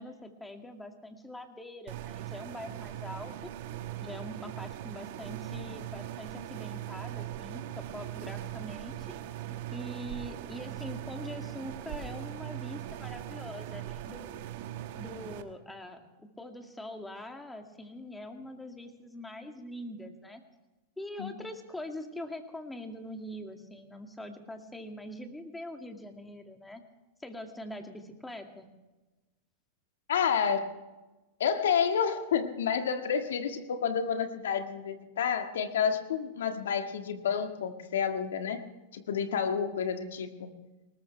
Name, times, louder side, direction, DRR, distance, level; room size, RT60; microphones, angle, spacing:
voice 1, 0.0-3.3 4.0-9.1 9.7-14.4 15.0-20.4 21.0-26.8 27.2-28.7, left 1 dB, 10° left, 4 dB, 2.3 m, -43 dB
sound 1, 1.9-15.4, right 12 dB, 60° right, 1.3 m, -40 dB
voice 2, 30.1-30.7 31.4-38.6 38.9-40.5, left 7 dB, 80° left, 7 dB, 1.7 m, -29 dB
20.0 x 19.0 x 3.4 m, 1.1 s
hypercardioid pair, 105°, 0 cm